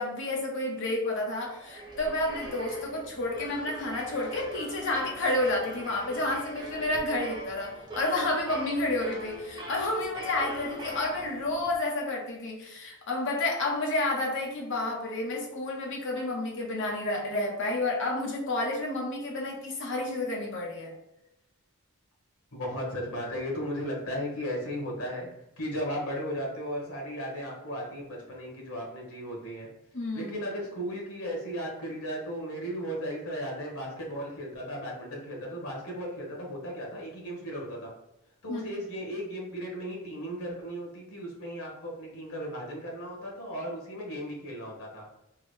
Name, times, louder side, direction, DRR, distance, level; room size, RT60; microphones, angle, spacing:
voice 1, 0.0-20.9 29.9-30.3 38.5-38.6, left 2 dB, 60° left, -1 dB, 0.9 m, -30 dB
sound 1, 1.3-11.7, right 1 dB, 20° right, 0.6 m, -42 dB
voice 2, 22.5-29.7 30.1-37.9 38.4-45.1, equal, 90° left, -2 dB, 1.4 m, -36 dB
3.6 x 2.2 x 3.2 m, 0.86 s
head